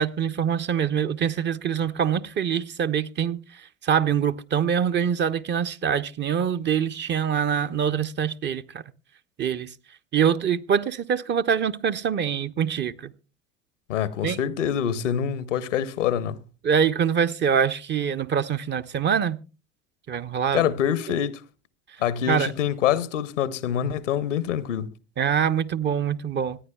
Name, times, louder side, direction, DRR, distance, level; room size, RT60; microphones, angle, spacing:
voice 1, 0.0-3.4 3.8-8.6 9.4-9.7 10.1-13.1 14.2-14.4 16.6-19.4 20.1-20.7 22.3-22.5 25.2-26.6, right 7 dB, 30° right, 0.6 m, -24 dB
voice 2, 13.9-16.4 20.5-21.4 22.0-24.9, left 9 dB, 85° left, 0.8 m, -25 dB
25.5 x 9.4 x 2.3 m
hypercardioid pair, 70°, 36 cm